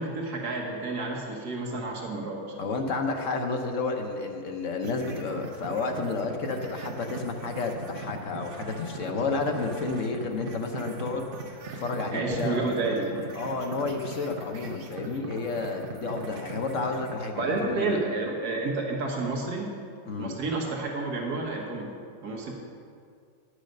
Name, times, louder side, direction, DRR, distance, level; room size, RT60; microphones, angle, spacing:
voice 1, 0.0-2.6 12.1-13.2 17.4-19.6 20.2-21.9 22.2-22.5, right 3 dB, 75° right, -1 dB, 1.8 m, -30 dB
voice 2, 2.6-11.3 11.7-12.7 13.3-18.1 20.1-20.3, left 3 dB, 55° left, 4 dB, 1.2 m, -31 dB
sound 1, 4.8-17.1, right 3 dB, 45° right, 0.8 m, -40 dB
10.5 x 6.5 x 6.5 m, 2.3 s
omnidirectional pair, 1.7 m